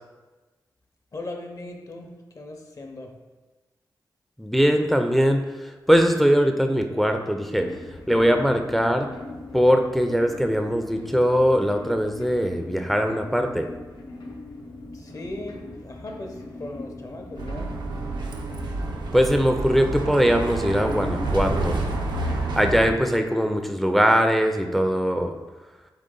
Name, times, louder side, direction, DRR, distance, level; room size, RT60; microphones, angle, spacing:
voice 1, 1.1-3.1 14.9-17.7, left 2 dB, 50° left, 3 dB, 0.6 m, -38 dB
voice 2, 4.4-7.7 8.1-9.1 9.5-13.7 19.1-21.8 22.3-25.3, equal, ahead, 5 dB, 0.4 m, -21 dB
sound 1, 7.5-18.3, left 2 dB, 90° left, 0.7 m, -41 dB
Bus, 17.4-22.9, right 2 dB, 80° right, 0.5 m, -28 dB
3.8 x 3.6 x 3.7 m, 1.2 s
cardioid pair, 60°, 8 cm